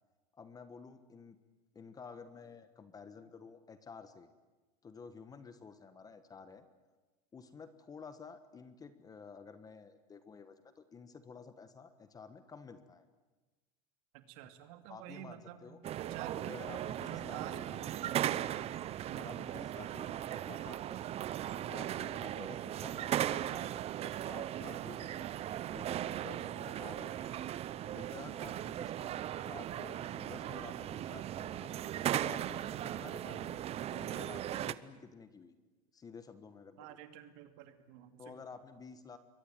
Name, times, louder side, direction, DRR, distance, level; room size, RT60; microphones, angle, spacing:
voice 1, 0.3-1.4 1.7-4.3 4.8-6.7 7.3-13.1 14.4-14.5 14.9-15.8 16.4-17.9 19.1-21.3 21.7-25.3 25.7-27.3 27.9-31.7 32.2-35.5 35.9-37.0 38.2-39.2, left 5 dB, 20° left, 11 dB, 1.4 m, -52 dB
voice 2, 14.1-15.6 15.9-16.6 17.1-17.6 18.0-18.3 19.0-19.3 30.3-30.9 36.8-38.3, right 12 dB, 60° right, 9 dB, 2.5 m, -49 dB
sound 1, 15.8-34.7, right 12 dB, 35° right, 0.8 m, -38 dB
27.0 x 23.0 x 9.2 m, 1.2 s
supercardioid pair, 135°, 19 cm